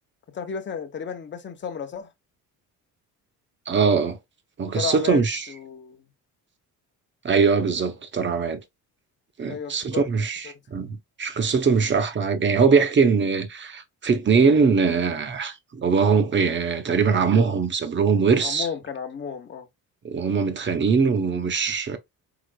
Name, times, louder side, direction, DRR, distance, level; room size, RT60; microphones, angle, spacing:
voice 1, 0.3-2.1 4.7-6.0 9.5-10.1 10.4-10.5 18.4-19.7, left 7 dB, 30° left, 0.9 m, -33 dB
voice 2, 3.7-4.2 4.6-5.5 7.2-8.6 9.4-18.7 20.0-22.0, right 5 dB, 30° right, 0.9 m, -21 dB
4.9 x 3.8 x 2.2 m
cardioid pair, 110°, 37 cm